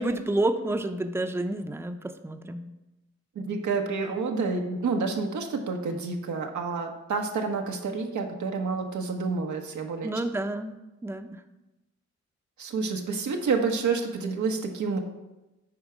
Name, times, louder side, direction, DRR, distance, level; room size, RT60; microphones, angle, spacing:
voice 1, 0.0-2.7 10.0-10.8 11.0-11.4, right 1 dB, 10° right, 7 dB, 0.6 m, -29 dB
voice 2, 3.3-10.1 12.6-15.0, right 4 dB, 90° right, 3 dB, 1.1 m, -29 dB
9.1 x 4.5 x 5.0 m, 1.0 s
cardioid pair, 65°, 29 cm